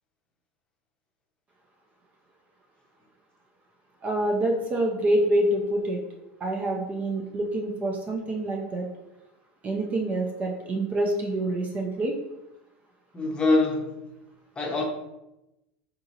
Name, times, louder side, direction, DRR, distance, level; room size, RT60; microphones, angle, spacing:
voice 1, 4.0-6.0 6.4-8.9 9.6-12.1, right 1 dB, 25° right, 1 dB, 0.5 m, -26 dB
voice 2, 13.1-14.0 14.6-14.8, left 2 dB, 20° left, -1 dB, 0.7 m, -24 dB
3.8 x 2.7 x 2.6 m, 0.92 s
supercardioid pair, 130°, 5 cm